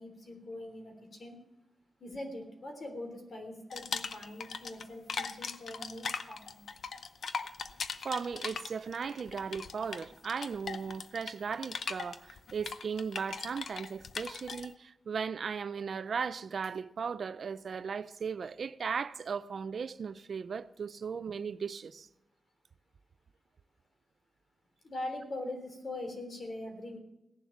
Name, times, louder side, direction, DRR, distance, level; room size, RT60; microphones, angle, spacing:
voice 1, 0.0-1.4 2.0-6.6 24.8-27.0, left 1 dB, 45° left, 3.6 m, -42 dB
sound 1, 3.7-4.8 5.1-14.7, left 5 dB, 65° left, 0.7 m, -39 dB
voice 2, 8.0-22.1, right 6 dB, 60° right, 0.5 m, -37 dB
17.0 x 11.0 x 7.2 m
wide cardioid pair, 140°, 0 cm